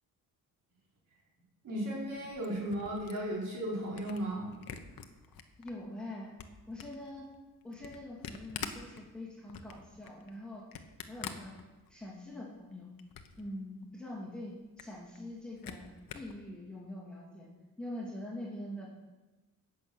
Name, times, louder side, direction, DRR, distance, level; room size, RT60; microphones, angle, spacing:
voice 1, 1.6-4.5, right 1 dB, 60° right, -5 dB, 5.3 m, -35 dB
Camera, 2.1-5.7 6.1-12.2 12.6-13.5 13.8-13.9 14.2-14.3 14.6-16.4, left 8 dB, 75° left, 1.2 m, -47 dB
voice 2, 5.6-6.4 6.7-7.3 7.6-10.6 11.1-11.6 11.9-12.9 13.4-15.9 16.1-17.5 17.8-18.9, left 1 dB, ahead, -5 dB, 2.7 m, -44 dB
17.5 x 7.3 x 6.3 m, 1.2 s
wide cardioid pair, 155°, 35 cm